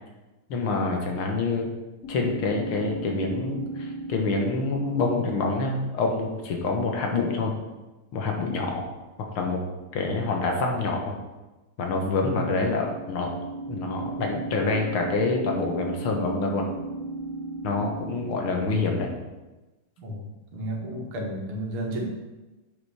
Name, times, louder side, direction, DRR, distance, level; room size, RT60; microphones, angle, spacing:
voice 1, 0.5-1.7 2.1-7.5 8.1-8.9 9.4-9.6 9.9-11.2 11.8-13.3 13.7-16.7 17.6-19.1, left 3 dB, 80° left, 1 dB, 2.1 m, -26 dB
sound 1, 2.0-6.1 12.2-19.1, right 2 dB, 45° left, 1.2 m, -36 dB
voice 2, 20.5-22.1, right 1 dB, 80° right, 0 dB, 2.3 m, -32 dB
7.8 x 5.5 x 4.9 m, 1.1 s
omnidirectional pair, 2.3 m